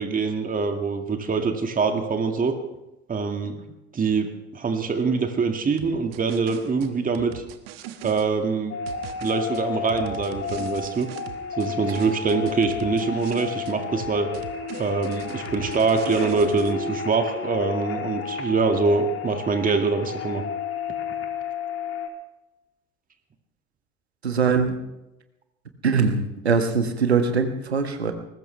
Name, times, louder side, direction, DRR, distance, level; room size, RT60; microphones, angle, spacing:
voice 1, 0.0-2.5 3.1-3.6 3.9-7.4 8.0-8.8 9.2-11.1 11.6-14.3 14.8-20.4, right 4 dB, 25° right, 5 dB, 2.1 m, -24 dB
sound 1, 5.8-8.3 8.9-11.7 11.9-13.7 14.0-16.7, right 12 dB, 70° right, 1.4 m, -40 dB
sound 2, 8.7-22.1, left 7 dB, 45° left, 3.2 m, -32 dB
voice 2, 24.2-24.8 25.8-28.1, right 5 dB, 90° right, 7 dB, 1.6 m, -22 dB
21.0 x 19.0 x 3.4 m, 0.95 s
figure-of-eight pair, 65°, 31 cm